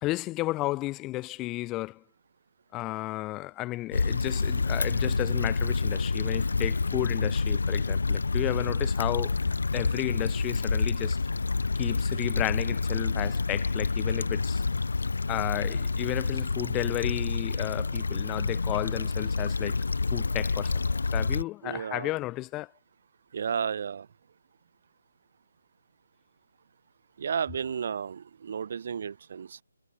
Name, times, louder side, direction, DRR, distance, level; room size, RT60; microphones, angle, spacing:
voice 1, 0.0-2.0 2.7-9.4 9.7-11.2 11.8-14.6 15.3-19.8 20.1-20.8 21.1-22.7, left 18 dB, 10° left, 1.4 m, -33 dB
Stream / Traffic noise roadway noise / Trickle dribble, 3.9-21.4, left 4 dB, 65° left, 1.4 m, -28 dB
sound 1, 4.9-10.2, left 5 dB, 40° left, 6.7 m, -44 dB
voice 2, 21.6-22.1 23.3-24.1 27.2-29.6, right 7 dB, 30° right, 1.6 m, -32 dB
hypercardioid pair, 180°, 0 cm